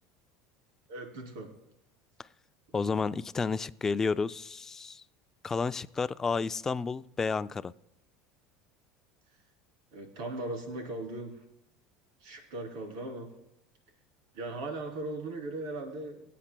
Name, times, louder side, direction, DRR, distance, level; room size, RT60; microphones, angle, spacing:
voice 1, 0.9-1.5 9.9-11.3 12.2-13.3 14.3-16.2, right 2 dB, 80° right, 2 dB, 3.1 m, -38 dB
voice 2, 2.7-5.0 5.4-7.7, left 4 dB, 20° left, 16 dB, 0.3 m, -31 dB
24.5 x 8.5 x 2.2 m, 0.81 s
supercardioid pair, 115°, 2 cm